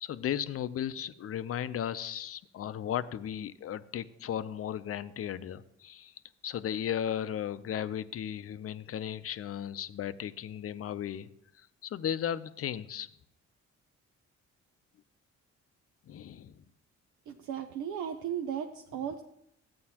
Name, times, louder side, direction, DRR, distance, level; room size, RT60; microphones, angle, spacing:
voice 1, 0.0-6.1 6.4-11.3 11.8-13.1 16.1-16.6, left 10 dB, 50° left, 14 dB, 0.6 m, -35 dB
voice 2, 17.3-19.2, right 9 dB, 85° right, 5 dB, 0.7 m, -36 dB
13.0 x 8.6 x 2.9 m, 0.77 s
cardioid pair, 90°, 30 cm